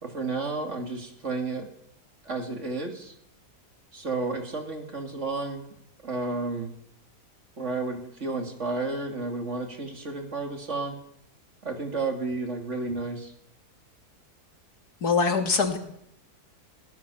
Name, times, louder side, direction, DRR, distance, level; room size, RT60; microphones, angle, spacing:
voice 1, 0.0-1.7 2.2-3.1 3.9-5.7 6.0-6.7 7.6-11.0 11.6-13.3, right 3 dB, 45° right, 4 dB, 3.2 m, -32 dB
voice 2, 15.0-15.8, left 5 dB, 75° left, 6 dB, 2.9 m, -23 dB
22.5 x 18.0 x 7.2 m, 0.75 s
omnidirectional pair, 1.7 m